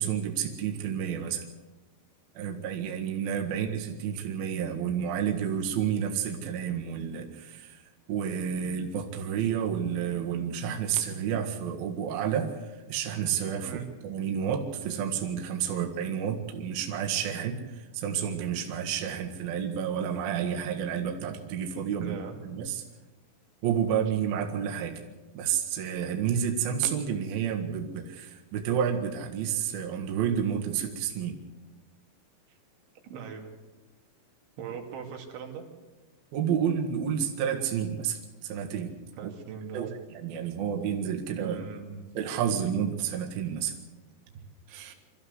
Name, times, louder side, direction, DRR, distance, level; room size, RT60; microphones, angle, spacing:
voice 1, 0.0-1.5 2.3-7.8 8.1-22.2 22.4-22.8 23.6-25.0 25.3-31.4 36.3-38.9 39.2-39.3 39.7-41.6 42.1-43.8 44.7-44.9, right 8 dB, 60° right, 2 dB, 3.2 m, -30 dB
voice 2, 22.0-22.4 33.0-33.5 34.6-35.6 39.2-39.9 41.4-42.0, right 7 dB, 90° right, 2 dB, 4.7 m, -40 dB
24.5 x 14.0 x 8.1 m, 1.2 s
omnidirectional pair, 5.2 m